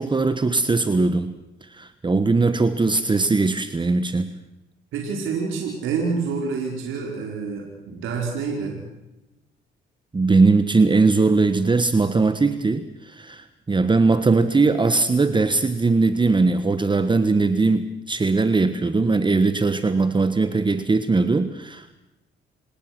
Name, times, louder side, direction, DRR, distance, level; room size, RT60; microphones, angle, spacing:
voice 1, 0.0-1.3 1.7-4.3 10.1-21.9, right 3 dB, 25° right, 11 dB, 1.4 m, -20 dB
voice 2, 4.9-8.8, right 5 dB, 85° right, 0 dB, 5.0 m, -27 dB
28.5 x 19.0 x 6.1 m, 0.95 s
cardioid pair, 90°, 20 cm